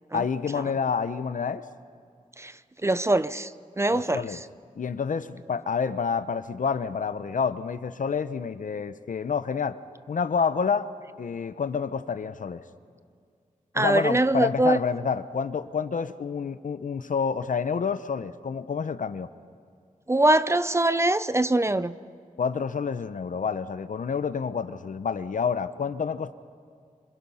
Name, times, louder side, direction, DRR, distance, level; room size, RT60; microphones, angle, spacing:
voice 1, 0.1-1.6 3.9-4.4 4.8-9.8 10.1-10.9 11.2-12.6 13.7-19.3 22.4-26.3, left 6 dB, 65° left, 0.8 m, -28 dB
voice 2, 2.8-3.5 3.8-4.4 13.7-14.8 20.1-22.0, right 1 dB, 20° right, 0.5 m, -23 dB
27.0 x 26.5 x 5.7 m
wide cardioid pair, 110°, 14 cm